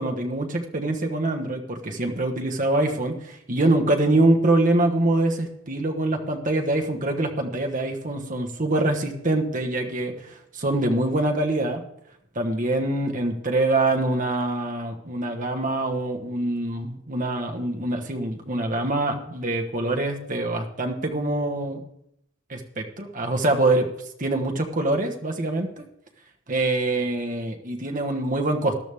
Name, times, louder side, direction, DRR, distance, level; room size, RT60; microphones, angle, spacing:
voice 1, 0.0-11.8 12.3-21.8 22.5-23.9 24.2-25.7 26.5-28.8, right 2 dB, 40° right, 3 dB, 1.2 m, -24 dB
13.5 x 12.0 x 3.5 m, 0.77 s
head